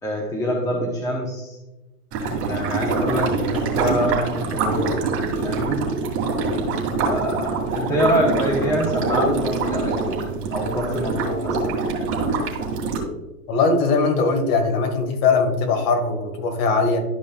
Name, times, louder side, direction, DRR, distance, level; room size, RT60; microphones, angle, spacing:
voice 1, 0.0-1.6 2.4-5.0 5.4-5.8 7.0-11.8, equal, 5° left, -2 dB, 1.1 m, -25 dB
sound 1, 2.1-13.0, right 3 dB, 30° right, 2.3 m, -24 dB
voice 2, 13.5-17.0, left 4 dB, 40° left, 5 dB, 1.8 m, -20 dB
12.0 x 5.4 x 2.3 m, 1.1 s
hypercardioid pair, 140°, 46 cm